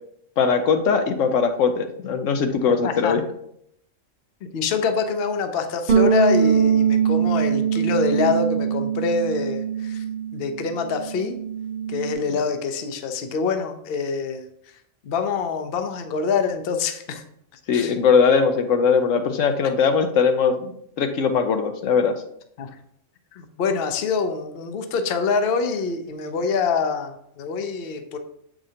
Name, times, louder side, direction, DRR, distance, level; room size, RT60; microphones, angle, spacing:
voice 1, 0.4-3.2 17.7-20.7 21.0-22.2, left 5 dB, 75° left, 6 dB, 1.0 m, -20 dB
voice 2, 2.8-3.1 4.5-10.0 10.3-11.4 11.9-14.4 15.0-17.2 17.7-18.0 22.6-22.7 23.3-28.2, left 5 dB, 55° left, 7 dB, 0.8 m, -25 dB
sound 1, 5.9-10.4 10.7-12.1, right 7 dB, 45° right, 0.9 m, -22 dB
7.5 x 4.9 x 2.8 m, 0.71 s
omnidirectional pair, 1.4 m